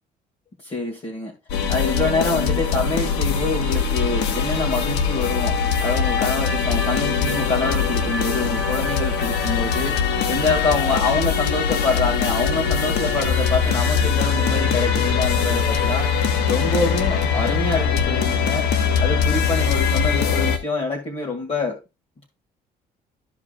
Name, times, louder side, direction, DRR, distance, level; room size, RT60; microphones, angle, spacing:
voice 1, 0.6-1.3 1.7-16.1 16.5-18.7 19.0-21.8, left 3 dB, 35° left, 2.3 m, -26 dB
sound 1, 1.5-20.6, left 6 dB, 85° left, 1.3 m, -22 dB
13.5 x 4.9 x 2.4 m
cardioid pair, 110°, 17 cm